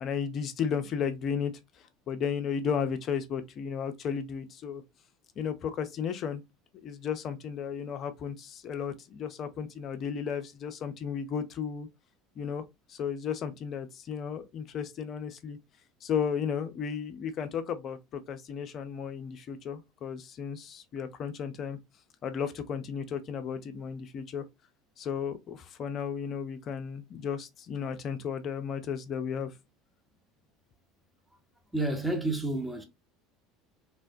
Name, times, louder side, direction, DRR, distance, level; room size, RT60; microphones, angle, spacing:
voice 1, 0.0-1.6 2.1-4.8 5.4-6.4 6.8-11.9 12.4-12.6 12.9-15.6 16.0-21.8 22.2-24.4 25.0-29.5, left 7 dB, 40° left, 0.5 m, -34 dB
voice 2, 31.7-32.8, right 2 dB, 5° right, 0.8 m, -30 dB
3.3 x 2.1 x 2.6 m
figure-of-eight pair, 70°, 0 cm